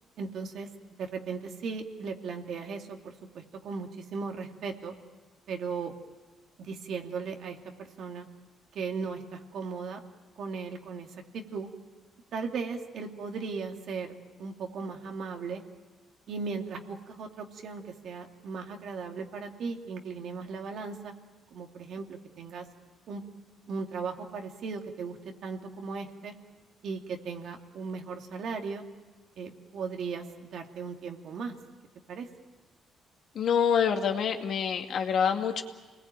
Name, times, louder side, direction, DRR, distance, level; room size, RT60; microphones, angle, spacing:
voice 1, 0.2-0.7 1.0-4.9 5.5-5.9 6.6-8.3 8.7-10.0 10.4-11.1 11.3-11.7 12.3-14.1 14.4-15.6 16.3-21.1 21.5-22.6 23.1-23.2 23.7-26.3 26.8-28.8 29.4-31.5 32.1-32.3, right 5 dB, 65° right, 3 dB, 2.7 m, -37 dB
voice 2, 33.4-35.6, left 7 dB, 65° left, 4 dB, 2.3 m, -26 dB
28.0 x 20.5 x 9.2 m, 1.3 s
cardioid pair, 90°, 0 cm